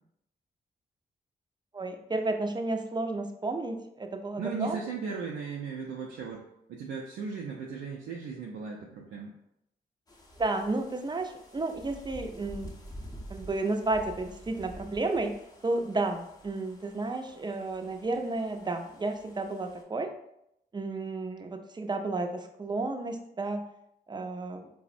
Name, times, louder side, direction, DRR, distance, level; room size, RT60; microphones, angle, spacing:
voice 1, 1.7-4.8 10.4-12.7 13.3-15.3 15.6-20.1 20.7-23.6 24.1-24.7, right 2 dB, 25° right, 6 dB, 0.4 m, -32 dB
voice 2, 4.4-6.4 6.7-9.3, right 5 dB, 85° right, -2 dB, 0.4 m, -37 dB
sound 1, 10.1-19.8, equal, 20° left, 0.6 m, -49 dB
4.0 x 2.0 x 2.5 m, 0.79 s
supercardioid pair, 50°, 19 cm